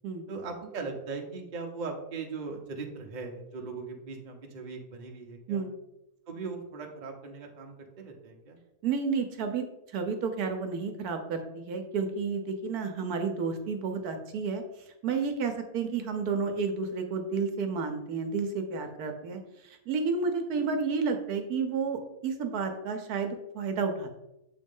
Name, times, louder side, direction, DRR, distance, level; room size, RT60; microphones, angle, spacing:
voice 1, 0.3-5.6 6.3-8.6, right 4 dB, 35° right, 2 dB, 0.9 m, -39 dB
voice 2, 8.8-9.7 9.9-14.6 15.0-24.1, right 5 dB, 70° right, 5 dB, 1.2 m, -31 dB
7.3 x 3.1 x 5.3 m, 0.90 s
omnidirectional pair, 1.7 m